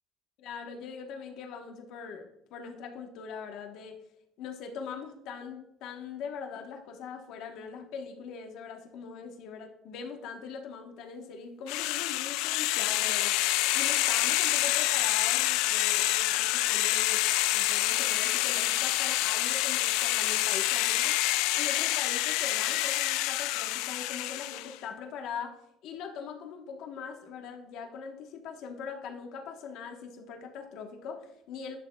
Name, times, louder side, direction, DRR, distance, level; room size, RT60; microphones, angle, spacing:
voice 1, 0.4-4.0 4.4-13.4 13.7-17.2 17.5-21.2 21.5-25.6 25.8-31.8, left 6 dB, 70° left, 3 dB, 1.1 m, -41 dB
sound 1, 11.7-24.7, left 16 dB, 90° left, 0.3 m, -27 dB
11.5 x 6.4 x 2.3 m, 0.79 s
cardioid pair, 130°, 0 cm